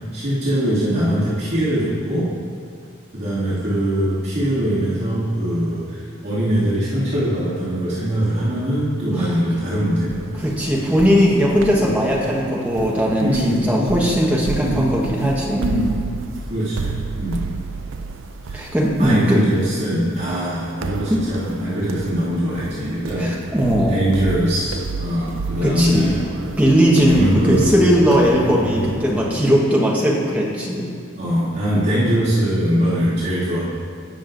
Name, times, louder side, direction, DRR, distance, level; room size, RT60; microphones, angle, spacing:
voice 1, 0.1-2.3 3.1-10.3 10.8-10.9 11.8-11.9 13.2-13.9 14.6-14.8 15.6-16.0 16.5-17.4 18.5-18.6 19.0-23.3 23.9-26.2 27.0-27.6 28.3-28.8 31.1-33.6, equal, 55° right, -12 dB, 2.4 m, -22 dB
sound 1, 10.1-29.6, right 4 dB, 75° right, 0.4 m, -32 dB
voice 2, 10.4-15.6 18.5-19.4 21.1-21.3 23.2-24.0 25.6-26.3 26.6-30.9, equal, 5° right, -4 dB, 1.3 m, -18 dB
18.5 x 6.6 x 2.6 m, 2.2 s
head